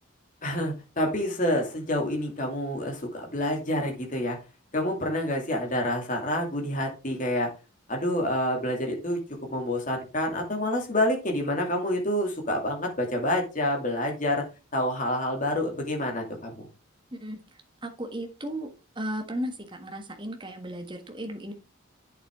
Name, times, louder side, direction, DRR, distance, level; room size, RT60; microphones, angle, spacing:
voice 1, 0.4-4.4 4.7-7.5 7.9-9.2 9.5-14.4 14.7-16.7, left 1 dB, 35° left, 1 dB, 2.5 m, -28 dB
voice 2, 17.1-17.4 17.8-18.7 18.9-21.5, equal, 20° right, 4 dB, 1.5 m, -35 dB
8.3 x 7.1 x 3.6 m, 0.30 s
head